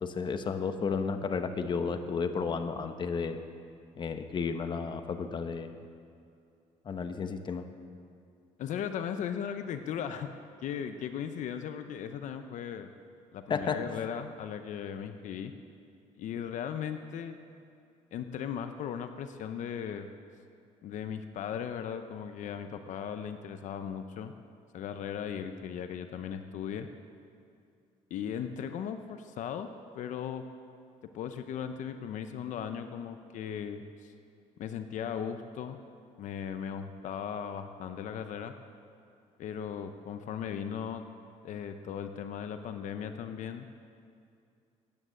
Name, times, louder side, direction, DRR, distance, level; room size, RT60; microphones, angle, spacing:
voice 1, 0.0-3.4 4.0-5.8 6.8-7.6 13.5-13.8, left 5 dB, 35° left, 8 dB, 1.0 m, -32 dB
voice 2, 8.6-10.3 10.6-12.9 13.3-15.5 16.2-17.4 18.1-20.1 20.8-24.3 24.7-26.9 28.1-29.7 29.9-30.4 31.1-34.1 34.6-35.8 36.2-38.5 39.4-41.0 41.4-43.7, left 8 dB, 65° left, 8 dB, 0.8 m, -37 dB
14.0 x 9.9 x 8.1 m, 2.5 s
cardioid pair, 110°, 14 cm